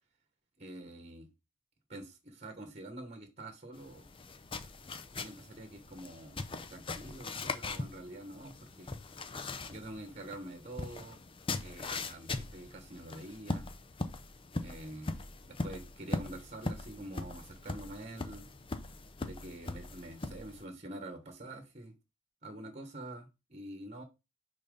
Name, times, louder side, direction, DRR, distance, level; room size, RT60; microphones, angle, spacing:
voice 1, 0.6-1.3 1.9-4.0 5.1-6.4 6.7-8.9 9.7-11.2 11.6-13.7 14.6-15.2 15.5-18.4 19.2-21.9 22.4-24.0, right 1 dB, 35° right, 1.3 m, -46 dB
sound 1, 3.7-20.6, left 3 dB, 25° left, 0.6 m, -41 dB
10.5 x 4.1 x 3.8 m
head